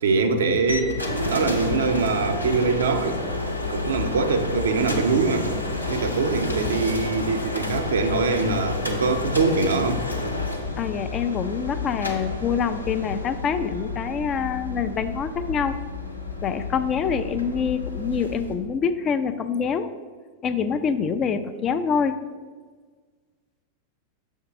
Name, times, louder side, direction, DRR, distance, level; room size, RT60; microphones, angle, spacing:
voice 1, 0.0-1.0 1.3-3.2 3.7-5.5 5.9-10.0, right 4 dB, 65° right, 7 dB, 0.6 m, -23 dB
sound 1, 0.7-18.5, left 2 dB, 90° left, 0.8 m, -30 dB
voice 2, 10.8-15.8 16.4-19.9 20.4-22.2, left 6 dB, 30° left, 10 dB, 0.4 m, -25 dB
6.4 x 3.6 x 5.9 m, 1.5 s
figure-of-eight pair, 90°, 0 cm